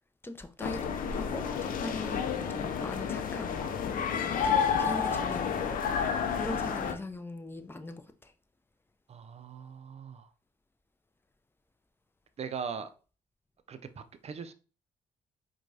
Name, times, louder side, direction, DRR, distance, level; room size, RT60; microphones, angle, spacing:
voice 1, 0.2-3.6 4.4-5.5 6.3-8.3, left 2 dB, 15° left, 0.6 m, -41 dB
sound 1, 0.6-6.9, left 7 dB, 60° left, 0.5 m, -30 dB
voice 2, 9.1-10.3 12.4-12.9 13.7-14.5, right 6 dB, 40° right, 0.5 m, -40 dB
4.5 x 2.3 x 2.7 m
supercardioid pair, 55°, 16 cm